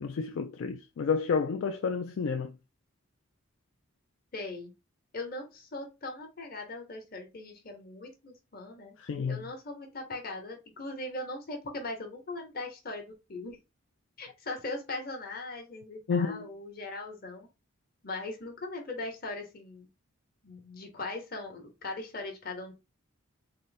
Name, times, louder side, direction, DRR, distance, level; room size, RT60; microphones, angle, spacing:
voice 1, 0.0-2.6 9.0-9.4 16.1-16.5, left 5 dB, 65° left, 0.3 m, -30 dB
voice 2, 4.3-4.7 5.1-8.9 9.3-13.6 14.2-17.5 18.0-19.9 20.4-22.7, left 2 dB, 45° left, 1.0 m, -39 dB
3.8 x 2.0 x 3.9 m
head